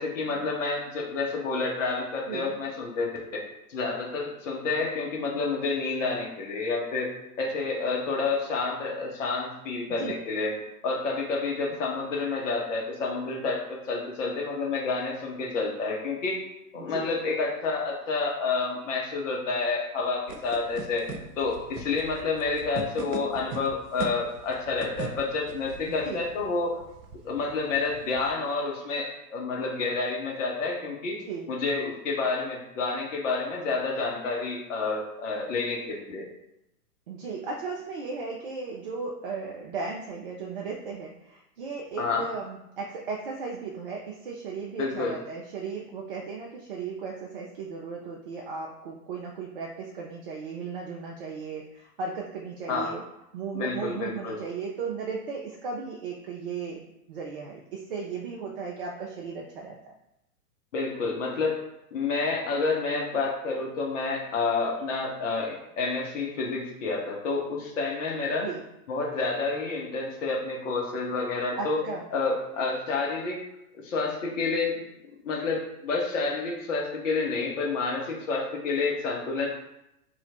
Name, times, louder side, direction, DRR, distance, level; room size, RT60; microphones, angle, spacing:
voice 1, 0.0-3.4 3.7-7.1 7.4-10.5 10.8-16.4 16.7-21.1 21.4-26.8 27.2-31.2 31.5-36.3 42.0-42.2 44.8-45.1 52.7-52.9 53.5-54.4 60.7-61.6 61.9-68.5 68.9-71.8 72.1-73.4 73.7-74.8 75.2-79.5, left 4 dB, 55° left, 0 dB, 1.0 m, -29 dB
voice 2, 16.8-17.1 25.9-26.2 31.3-31.4 37.1-53.0 53.3-59.9 68.4-68.6 71.6-72.1, right 5 dB, 40° right, -1 dB, 0.4 m, -36 dB
sound 1, 20.3-28.3, right 4 dB, 80° right, 0.6 m, -41 dB
3.0 x 2.4 x 4.1 m, 0.85 s
figure-of-eight pair, 105°, 46 cm